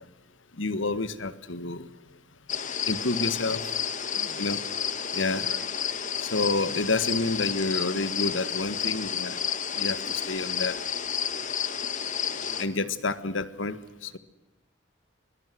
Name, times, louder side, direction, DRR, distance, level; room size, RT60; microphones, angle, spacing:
voice 1, 0.6-1.9 2.8-3.6 4.4-4.6 5.1-5.5 6.2-9.4 9.8-10.8 12.6-14.2, left 3 dB, 85° left, 14 dB, 1.6 m, -29 dB
sound 1, 2.5-12.7, left 8 dB, 40° left, 1.7 m, -31 dB
voice 2, 4.1-4.5 5.4-6.0 6.3-6.5 12.3-12.6, right 4 dB, 45° right, 12 dB, 1.7 m, -48 dB
24.0 x 22.0 x 7.8 m, 1.1 s
head